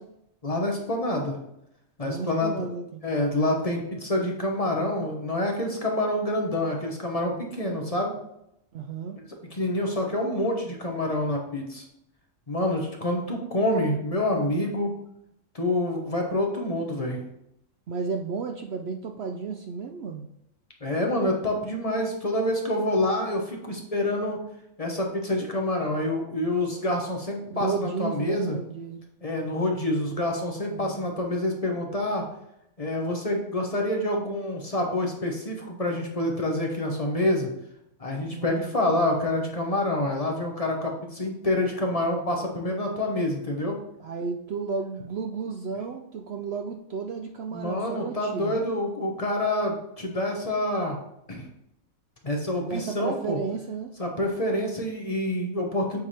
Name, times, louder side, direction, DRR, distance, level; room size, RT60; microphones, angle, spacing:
voice 1, 0.4-1.4 2.0-2.7 3.0-8.2 9.5-11.8 12.5-14.9 15.5-17.2 20.8-24.4 24.8-28.6 29.2-32.2 32.8-37.5 38.0-43.8 47.5-51.0 51.3-51.4 52.2-53.4 54.0-56.0, left 1 dB, 30° left, 1 dB, 0.9 m, -27 dB
voice 2, 2.0-3.0 8.7-9.2 17.9-20.3 27.5-29.0 30.7-31.1 38.3-39.6 44.0-48.6 52.6-53.9, right 5 dB, 85° right, 4 dB, 0.5 m, -33 dB
8.2 x 3.4 x 4.3 m, 0.80 s
omnidirectional pair, 1.7 m